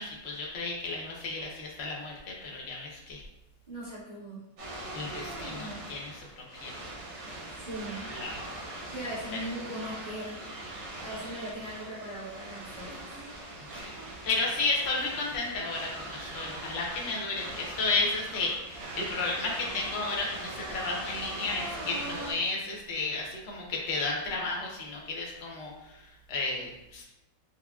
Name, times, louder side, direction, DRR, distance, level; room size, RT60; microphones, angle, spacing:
voice 1, 0.0-3.2 4.9-6.7 8.1-8.4 13.7-14.0 14.2-27.0, left 3 dB, 55° left, -2 dB, 0.7 m, -33 dB
voice 2, 3.7-4.4 7.5-8.0 8.9-10.4 11.0-13.3, right 1 dB, 35° right, -12 dB, 0.7 m, -39 dB
sound 1, 4.6-22.3, right 1 dB, 80° right, 1.9 m, -41 dB
5.6 x 2.0 x 2.3 m, 0.89 s
omnidirectional pair, 1.9 m